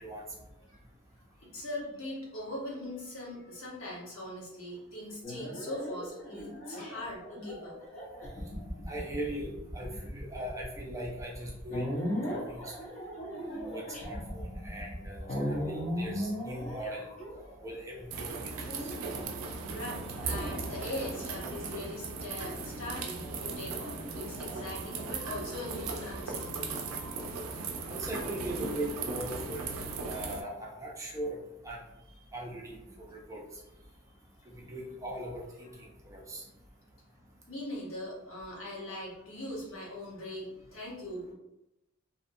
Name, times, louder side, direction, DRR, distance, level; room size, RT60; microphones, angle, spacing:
voice 1, 1.4-7.8 18.9-26.7 30.1-30.3 32.2-32.3 37.5-41.3, left 1 dB, 70° left, -6 dB, 1.0 m, -41 dB
sound 1, 5.2-17.9 18.7-19.3 20.1-21.6 23.2-24.6, equal, 35° left, 0.6 m, -38 dB
voice 2, 8.9-11.9 12.2-12.7 13.4-17.1 17.6-18.5 18.8-18.9 27.9-29.7 30.0-31.4 31.6-31.8 32.3-33.4 34.5-36.4, right 1 dB, 15° right, -2 dB, 0.4 m, -40 dB
sound 2, 18.1-30.4, right 4 dB, 90° right, 0.4 m, -37 dB
2.6 x 2.3 x 2.6 m, 0.90 s
head